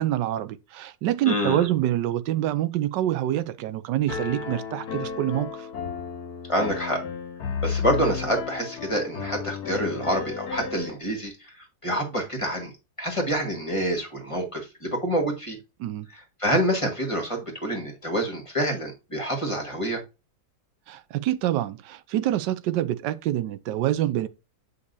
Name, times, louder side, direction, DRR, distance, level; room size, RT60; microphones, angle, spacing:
voice 1, 0.0-5.7 15.8-16.1 20.9-24.3, right 13 dB, 85° right, 1.3 m, -26 dB
voice 2, 1.2-1.7 6.5-7.0 7.6-12.7 13.0-15.6 16.1-20.0, equal, 20° left, 1.6 m, -27 dB
Piano, 4.1-10.9, left 6 dB, 65° left, 1.5 m, -33 dB
8.1 x 5.3 x 2.7 m
omnidirectional pair, 1.8 m